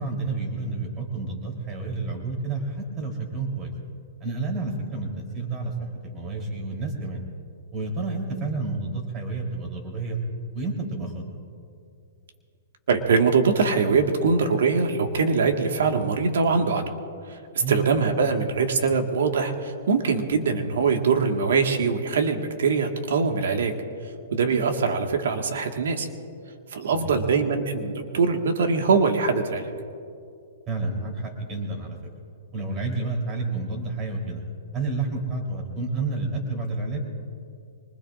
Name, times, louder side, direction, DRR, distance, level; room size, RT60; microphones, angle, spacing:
voice 1, 0.0-3.7 4.2-7.2 7.7-10.2 10.5-11.1 17.6-17.8 26.9-27.2 30.7-32.0 32.5-34.4 34.7-37.0, right 3 dB, 25° right, 1 dB, 3.6 m, -30 dB
voice 2, 12.9-16.9 17.3-23.7 24.3-26.1 26.7-29.7, right 5 dB, 75° right, 4 dB, 1.7 m, -23 dB
25.0 x 20.5 x 2.6 m, 2.4 s
hypercardioid pair, 140°, 0 cm